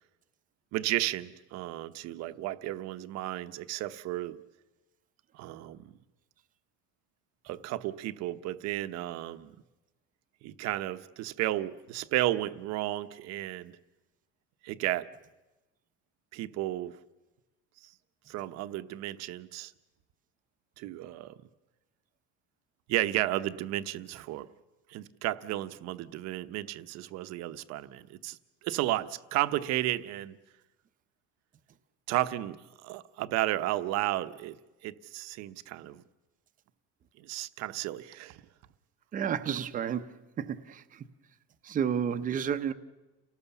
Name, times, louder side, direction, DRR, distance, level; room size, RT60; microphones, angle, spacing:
voice 1, 0.7-4.4 5.3-5.9 7.4-9.6 10.4-13.8 14.6-15.1 16.3-17.0 17.8-17.9 18.3-19.7 20.8-21.3 22.9-24.5 24.9-30.4 32.1-32.6 32.8-34.6 34.8-36.0 37.2-38.4, right 15 dB, 55° right, 1.0 m, -33 dB
voice 2, 39.1-41.0 41.6-42.7, right 8 dB, 25° right, 0.8 m, -31 dB
29.5 x 18.0 x 7.1 m
cardioid pair, 160°, 31 cm